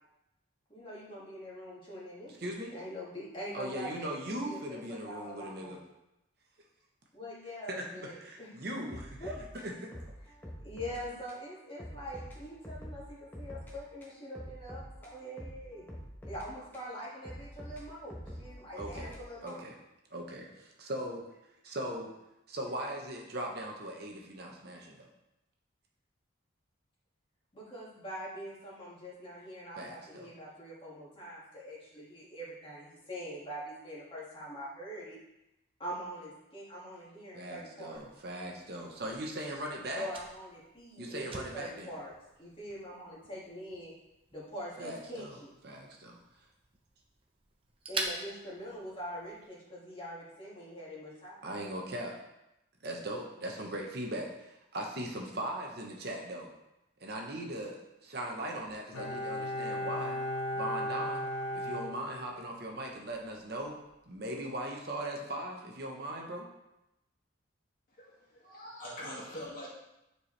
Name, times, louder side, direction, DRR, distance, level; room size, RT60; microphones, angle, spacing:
voice 1, 0.7-2.4 2.7-5.8 7.1-8.5 9.2-9.4 10.6-15.9 16.2-19.6 27.5-35.2 35.8-38.0 39.9-42.1 42.4-43.9 44.3-45.5 47.9-51.5, equal, 25° left, -6 dB, 2.1 m, -44 dB
voice 2, 2.3-2.7 3.5-5.8 7.7-9.9 18.7-19.1 19.4-19.7 20.1-21.2 21.6-22.1 22.5-25.1 29.8-30.3 37.3-40.1 41.0-41.9 44.8-45.4 45.6-46.5 51.4-52.1 52.8-56.5 57.0-60.2 60.5-61.2 61.5-63.8 64.1-66.5, right 1 dB, 55° right, 0 dB, 1.0 m, -39 dB
sound 1, 8.9-11.0 11.3-11.4 11.8-13.7 14.0-16.9 17.2-19.8, equal, 10° left, 1.2 m, -46 dB
Fire, 37.9-49.5, right 3 dB, 30° right, 0.8 m, -46 dB
Bowed string instrument, 58.9-62.7 63.0-63.1, equal, 75° left, 1.3 m, -36 dB
voice 3, 67.9-69.7, equal, 45° left, -5 dB, 2.1 m, -44 dB
10.0 x 4.7 x 3.3 m, 0.91 s
head